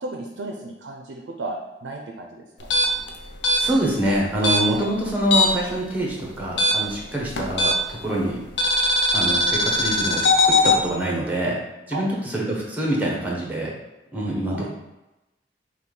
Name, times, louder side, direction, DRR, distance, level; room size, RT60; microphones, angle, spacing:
voice 1, 0.0-2.8 11.9-12.0 14.5-14.7, right 2 dB, 90° right, 2 dB, 0.4 m, -34 dB
sound 1, 2.6-5.7 6.0-8.0 8.6-10.8, left 2 dB, 75° left, 0.5 m, -20 dB
voice 2, 3.6-8.4 9.1-11.6 11.9-13.7 14.1-14.7, right 1 dB, 10° right, -3 dB, 0.8 m, -25 dB
5.4 x 2.2 x 3.2 m, 1.0 s
head